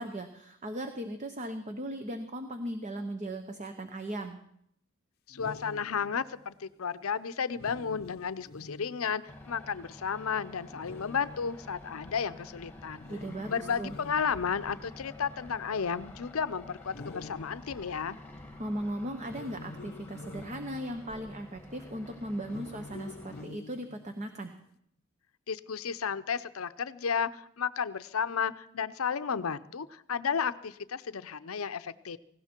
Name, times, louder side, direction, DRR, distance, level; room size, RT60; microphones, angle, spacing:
voice 1, 0.0-4.4 13.1-14.0 18.6-24.5, right 1 dB, 35° right, 7 dB, 1.0 m, -37 dB
voice 2, 5.3-13.1 13.5-18.2 25.5-32.2, left 6 dB, 85° left, 14 dB, 0.7 m, -33 dB
sound 1, 5.3-6.4 7.5-9.5 10.7-11.8 13.0-15.0 16.9-18.3 19.2-21.2 22.4-24.4, left 3 dB, 50° left, 0.7 m, -48 dB
sound 2, 9.3-23.4, left 2 dB, 10° left, 1.6 m, -49 dB
18.5 x 16.5 x 4.5 m, 0.70 s
head